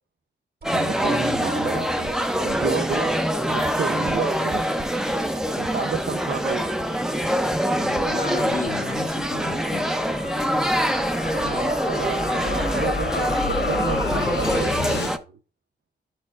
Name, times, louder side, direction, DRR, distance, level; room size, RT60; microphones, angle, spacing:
sound 1, 0.6-15.2, equal, 5° right, 0.5 m, -24 dB
sound 2, 0.6-12.8 13.1-13.2, right 3 dB, 65° right, 2.1 m, -42 dB
voice 1, 0.7-3.2 3.5-4.7 5.6-6.7 11.4-15.4, right 6 dB, 90° right, 0.6 m, -31 dB
voice 2, 7.8-9.9 14.9-15.0, left 4 dB, 50° left, 0.6 m, -34 dB
sound 3, 7.9-15.1, left 4 dB, 80° left, 0.9 m, -32 dB
11.5 x 4.5 x 2.4 m
wide cardioid pair, 145°, 18 cm